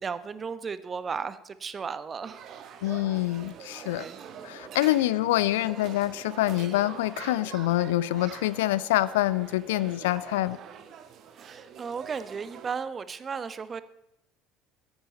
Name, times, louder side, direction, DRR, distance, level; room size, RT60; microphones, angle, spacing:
voice 1, 0.0-2.7 3.7-4.2 11.4-13.8, right 5 dB, 30° right, 14 dB, 1.2 m, -35 dB
sound 1, 2.2-12.7, right 8 dB, 45° right, 1.7 m, -44 dB
voice 2, 2.8-4.0 4.4-10.6, left 16 dB, 65° left, 19 dB, 0.5 m, -26 dB
16.0 x 14.0 x 4.1 m, 0.87 s
figure-of-eight pair, 60°, 0 cm